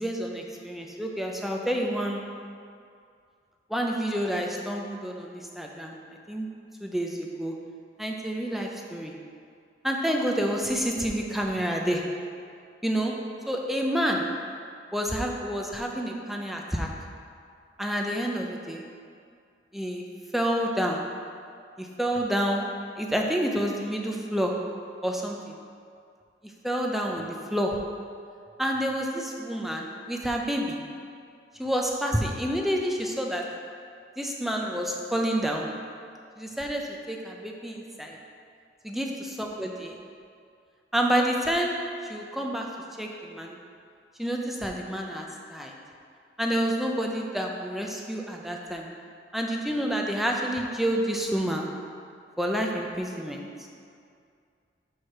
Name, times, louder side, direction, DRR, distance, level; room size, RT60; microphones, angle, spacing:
voice 1, 0.0-2.2 3.7-6.0 6.3-6.5 6.8-7.6 8.0-9.1 9.8-12.2 12.8-14.4 14.9-16.9 17.8-18.8 19.7-20.1 20.3-21.1 21.8-24.7 25.0-25.6 26.6-27.9 28.6-30.9 31.6-33.6 34.2-35.8 36.4-38.2 38.8-40.0 40.9-43.6 44.2-45.8 46.4-48.9 49.3-51.8 52.4-53.5, equal, ahead, 0 dB, 0.5 m, -29 dB
6.2 x 4.8 x 5.6 m, 2.3 s
head